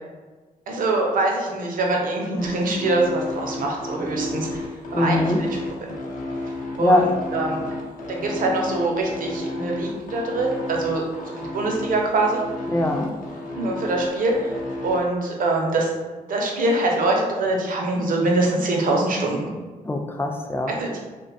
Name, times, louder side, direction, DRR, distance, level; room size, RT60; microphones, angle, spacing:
voice 1, 0.7-4.6 4.9-5.5 5.8-5.9 6.8-7.0 7.3-7.6 8.1-12.4 13.6-14.5 14.8-15.9 16.3-19.5 20.7-21.0, right 2 dB, 60° right, 0 dB, 0.6 m, -24 dB
sound 1, 2.4-15.0, left 2 dB, 60° left, 0.6 m, -32 dB
voice 2, 4.9-5.5 6.8-7.1 12.7-13.3 19.8-20.8, left 1 dB, 15° left, 3 dB, 0.3 m, -22 dB
2.5 x 2.2 x 2.5 m, 1.3 s
cardioid pair, 70°, 16 cm